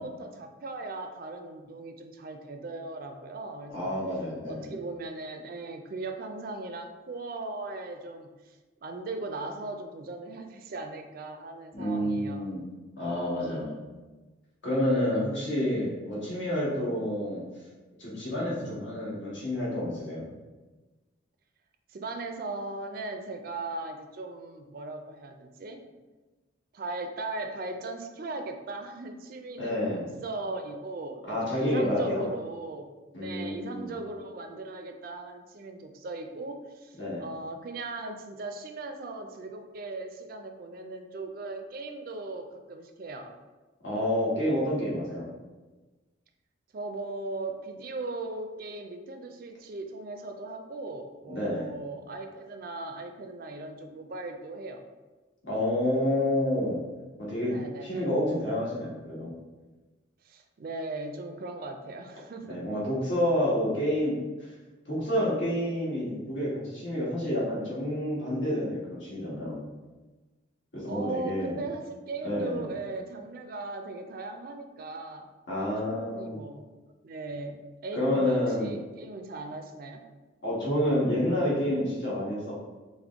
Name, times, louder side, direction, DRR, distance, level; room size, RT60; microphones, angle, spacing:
voice 1, 0.0-3.9 4.5-8.6 8.8-12.5 21.9-25.8 26.7-32.9 33.1-43.3 46.7-54.8 57.5-58.1 60.2-62.6 70.9-76.6 77.0-77.6 77.8-80.0, right 3 dB, 50° right, 6 dB, 0.3 m, -38 dB
voice 2, 3.7-4.7 11.7-12.7 13.0-13.8 14.6-17.5 18.0-20.3 29.6-30.1 31.3-32.3 33.1-33.9 37.0-37.3 43.8-45.3 51.3-51.7 55.4-56.8 57.2-59.3 62.4-64.2 64.8-69.6 70.7-71.6 72.2-72.6 75.5-76.4 77.9-78.7 80.4-82.5, left 1 dB, 70° left, -6 dB, 1.4 m, -29 dB
5.1 x 2.1 x 3.5 m, 1.2 s
head